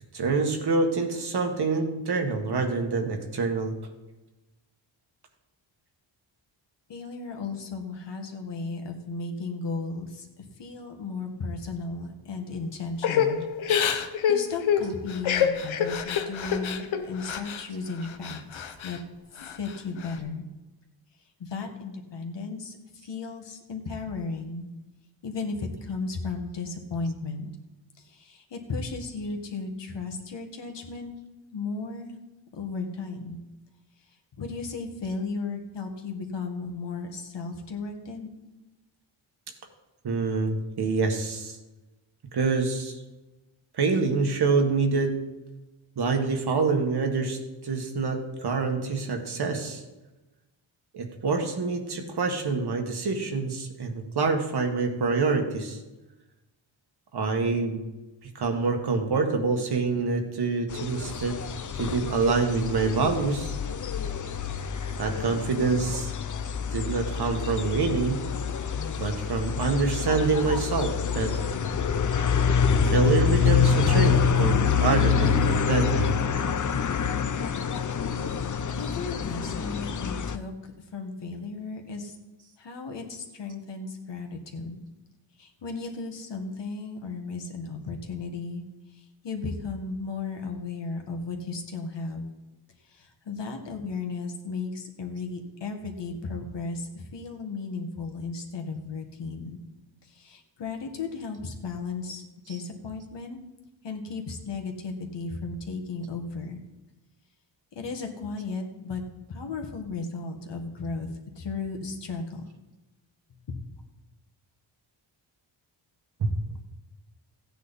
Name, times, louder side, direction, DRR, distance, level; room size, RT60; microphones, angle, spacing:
voice 1, 0.1-3.8 40.0-41.6 42.3-43.0 43.7-45.2 46.0-49.8 50.9-55.8 57.1-57.8 58.2-61.4 61.7-63.5 65.0-66.1 66.7-68.3 69.0-71.6 72.8-76.2 116.2-116.3, right 4 dB, 55° right, 4 dB, 1.7 m, -26 dB
voice 2, 6.9-13.5 14.3-19.0 19.3-20.4 21.4-22.8 23.0-24.7 25.2-27.5 28.0-31.1 31.5-32.2 32.5-33.4 34.4-38.3 78.7-80.5 80.9-82.2 82.6-84.8 85.4-88.6 88.9-92.3 92.9-99.6 100.0-103.4 103.8-106.6 107.7-109.0 109.3-111.1 111.4-112.4 113.5-113.6, left 4 dB, 60° left, 3 dB, 2.0 m, -35 dB
Crying sobbing / Breathing, 13.0-17.6 18.0-19.0 19.4-20.1, left 8 dB, 75° left, 1.1 m, -27 dB
sound 1, 60.7-80.4, left 7 dB, 40° left, 0.7 m, -26 dB
15.5 x 9.2 x 4.2 m, 1.1 s
wide cardioid pair, 115°, 48 cm